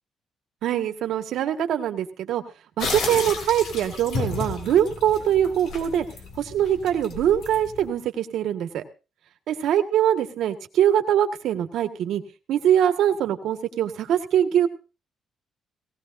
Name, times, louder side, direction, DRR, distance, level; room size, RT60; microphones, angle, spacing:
voice 1, 0.6-2.4 2.8-6.0 6.4-8.8 9.5-12.2 12.5-14.7, right 10 dB, 75° right, 7 dB, 1.7 m, -23 dB
sound 1, 2.8-7.9, left 4 dB, 65° left, 3.3 m, -33 dB
18.5 x 17.5 x 2.7 m, 0.32 s
cardioid pair, 165°, 0 cm